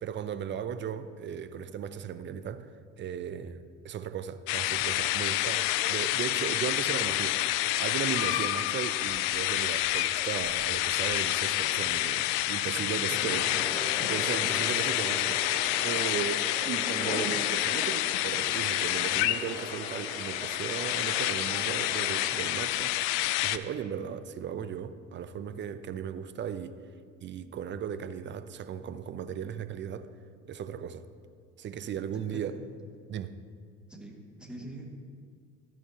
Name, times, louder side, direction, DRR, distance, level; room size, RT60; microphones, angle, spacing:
voice 1, 0.0-2.7 3.0-13.5 14.1-26.8 27.2-30.1 30.4-31.0 31.6-32.6 33.1-33.3, right 8 dB, 30° right, 13 dB, 0.5 m, -36 dB
sound 1, 4.5-23.6, left 15 dB, 60° left, 0.5 m, -29 dB
voice 2, 12.6-14.1 14.4-14.5 32.3-32.4 33.9-34.9, right 1 dB, ahead, 0 dB, 1.8 m, -44 dB
sound 2, 13.3-22.5, left 1 dB, 15° left, 2.4 m, -40 dB
12.5 x 9.0 x 2.8 m, 2.2 s
hypercardioid pair, 60°, 39 cm